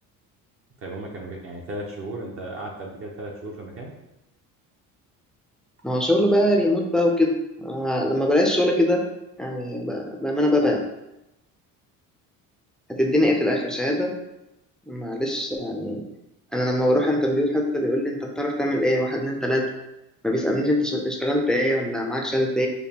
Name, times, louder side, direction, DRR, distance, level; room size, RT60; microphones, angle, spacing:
voice 1, 0.8-3.9, right 1 dB, 40° right, -1 dB, 0.6 m, -35 dB
voice 2, 5.8-9.0 9.4-10.8 12.9-14.1 14.9-16.0 16.5-19.6 20.2-22.7, left 1 dB, ahead, -1 dB, 0.4 m, -22 dB
5.2 x 2.2 x 2.9 m, 0.92 s
cardioid pair, 130°, 34 cm